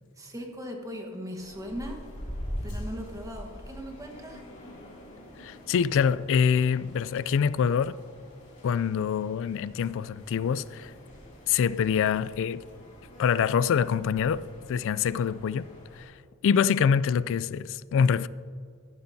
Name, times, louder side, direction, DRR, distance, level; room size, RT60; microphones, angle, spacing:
voice 1, 0.2-2.0 2.6-4.4, equal, 15° right, 1.2 m, -39 dB
sound 1, 1.4-16.0, equal, 35° left, 2.6 m, -44 dB
voice 2, 5.4-8.0 8.6-10.9 11.5-12.6 13.2-15.6 16.0-16.1 16.4-18.3, left 7 dB, 60° left, 0.3 m, -25 dB
15.0 x 11.5 x 2.7 m
head